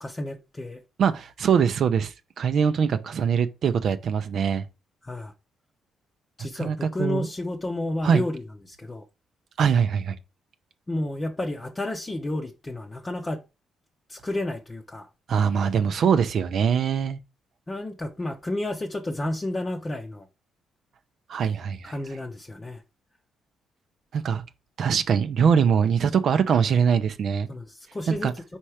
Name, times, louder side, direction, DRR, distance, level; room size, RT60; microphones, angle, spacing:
voice 1, 0.0-0.8 5.0-5.3 6.4-9.0 10.9-13.4 14.1-15.1 17.7-20.3 21.8-22.8 27.5-28.4, left 1 dB, 20° left, 0.7 m, -31 dB
voice 2, 1.0-4.7 6.6-7.3 8.0-8.2 9.6-10.2 15.3-17.2 21.3-21.9 24.1-24.4 24.8-27.5 28.1-28.3, right 7 dB, 60° right, 0.6 m, -22 dB
4.4 x 4.4 x 4.9 m
cardioid pair, 90°, 0 cm